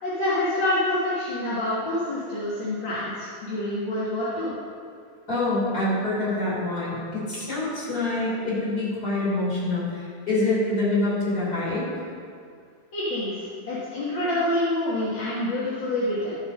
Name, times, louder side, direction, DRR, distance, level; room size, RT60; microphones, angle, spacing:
voice 1, 0.0-4.5 12.9-16.4, left 1 dB, 45° left, -9 dB, 1.8 m, -27 dB
voice 2, 5.3-11.9, left 2 dB, 30° left, -7 dB, 3.6 m, -26 dB
12.5 x 5.9 x 5.5 m, 2.2 s
omnidirectional pair, 3.5 m